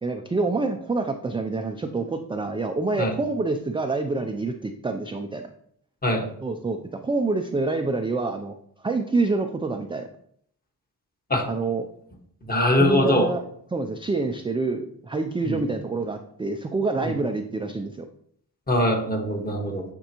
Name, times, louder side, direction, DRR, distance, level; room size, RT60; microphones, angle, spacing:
voice 1, 0.0-5.4 6.4-6.8 7.0-8.5 8.8-10.1 11.5-11.8 12.7-13.4 13.7-18.1, right 3 dB, 15° right, 5 dB, 0.4 m, -27 dB
voice 2, 12.4-13.3 15.4-15.6 17.0-17.1 18.7-19.8, left 1 dB, 25° left, 1 dB, 1.5 m, -22 dB
9.1 x 4.5 x 2.9 m, 0.67 s
wide cardioid pair, 105°, 37 cm